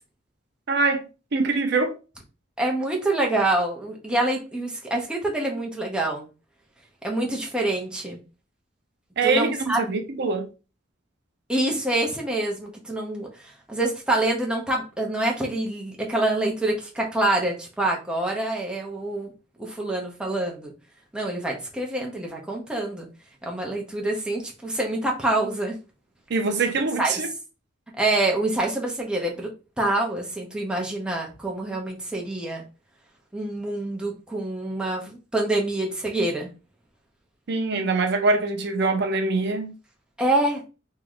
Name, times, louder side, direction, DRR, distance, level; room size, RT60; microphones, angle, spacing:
voice 1, 0.7-1.1 1.3-1.9 9.2-10.5 26.3-27.3 37.5-39.7, right 3 dB, 60° right, 0.6 m, -23 dB
voice 2, 2.6-6.3 7.0-8.2 9.2-10.1 11.5-13.3 13.7-19.3 19.6-20.7 21.1-23.1 23.4-25.7 27.0-27.1 28.0-29.5 29.8-32.6 33.3-36.5 40.2-40.6, right 2 dB, 5° right, 0.9 m, -26 dB
3.1 x 2.9 x 3.9 m
head